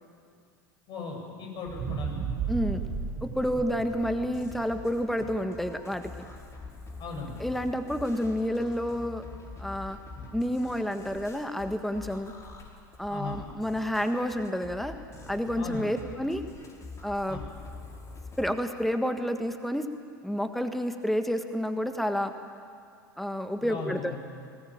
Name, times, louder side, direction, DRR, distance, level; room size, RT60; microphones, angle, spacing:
voice 1, 0.9-2.2 3.5-3.6 7.0-7.4 10.1-10.3 13.1-13.4 15.5-16.0 17.3-17.4 23.6-24.2, left 4 dB, 45° left, 1 dB, 7.8 m, -38 dB
sound 1, 1.7-5.9 6.4-6.5, right 6 dB, 40° right, 2.2 m, -35 dB
voice 2, 2.5-2.8 3.2-6.2 7.4-9.3 9.6-10.0 10.3-12.3 13.0-15.0 15.3-16.4 17.0-17.4 18.4-19.9 20.2-22.3 23.2-24.2, equal, ahead, 7 dB, 1.5 m, -29 dB
sound 2, 4.0-18.5, left 3 dB, 30° left, 4.6 m, -45 dB
20.5 x 19.0 x 9.0 m, 2.3 s
hypercardioid pair, 85°, 11 cm